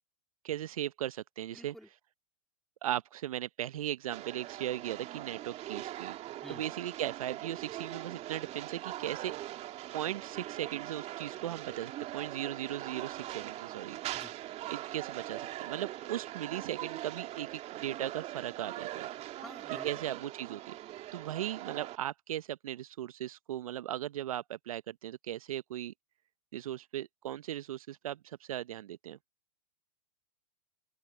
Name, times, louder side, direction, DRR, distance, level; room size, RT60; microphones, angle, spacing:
voice 1, 0.4-1.7 2.8-6.2 6.5-9.3 9.9-14.0 14.7-19.1 19.8-20.8 21.1-25.9 26.5-29.2, right 12 dB, 70° right, 0.9 m, -38 dB
voice 2, 1.5-1.9 6.4-6.7 14.1-14.3 19.4-20.1, equal, ahead, 3.8 m, -50 dB
sound 1, 4.1-22.0, right 14 dB, 35° right, 2.5 m, -41 dB
open air
hypercardioid pair, 105°, 19 cm